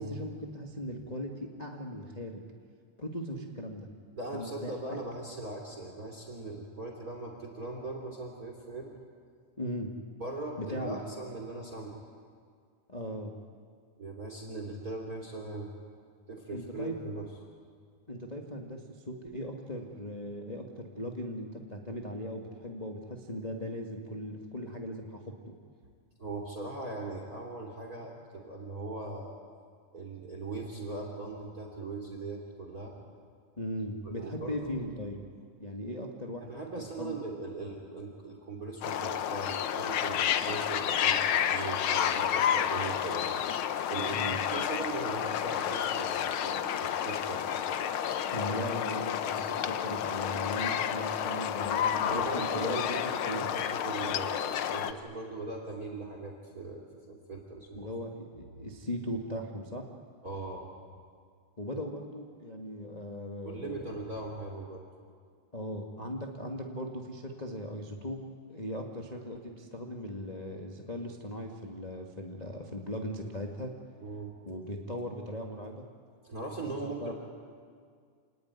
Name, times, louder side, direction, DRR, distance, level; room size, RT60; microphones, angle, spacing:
voice 1, 0.0-2.4 3.0-3.9 4.3-4.7 9.6-9.9 10.6-11.0 12.9-13.3 16.5-16.9 18.1-25.2 33.6-35.2 35.6-36.4 37.0-37.1 44.0-44.4 48.3-53.5 57.7-59.8 61.6-63.9 65.5-68.2 68.5-73.7 74.4-75.8 76.6-77.1, equal, 20° left, 0 dB, 1.3 m, -38 dB
voice 2, 4.2-8.9 10.2-12.0 14.0-15.7 16.3-17.3 26.2-29.3 29.9-32.9 34.0-34.7 36.4-41.2 41.5-43.4 43.9-47.8 52.0-57.9 60.2-60.7 63.4-64.8 74.0-74.4 76.2-77.1, right 2 dB, 30° right, 2 dB, 3.1 m, -40 dB
sound 1, 38.8-54.9, left 9 dB, 85° left, 1.1 m, -30 dB
28.0 x 19.5 x 9.7 m, 2.1 s
omnidirectional pair, 3.5 m